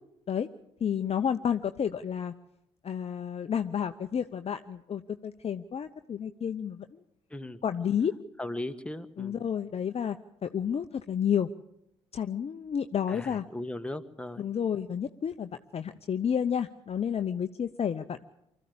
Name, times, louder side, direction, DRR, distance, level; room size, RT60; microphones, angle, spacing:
voice 1, 0.8-2.3 2.8-7.0 7.6-8.1 9.2-10.2 10.4-11.5 12.1-13.4 14.4-18.3, left 8 dB, 40° left, 8 dB, 0.9 m, -30 dB
voice 2, 7.3-7.6 8.4-9.5 13.1-14.5, left 1 dB, 5° left, 8 dB, 1.5 m, -38 dB
24.5 x 14.0 x 8.6 m, 0.81 s
figure-of-eight pair, 45°, 17 cm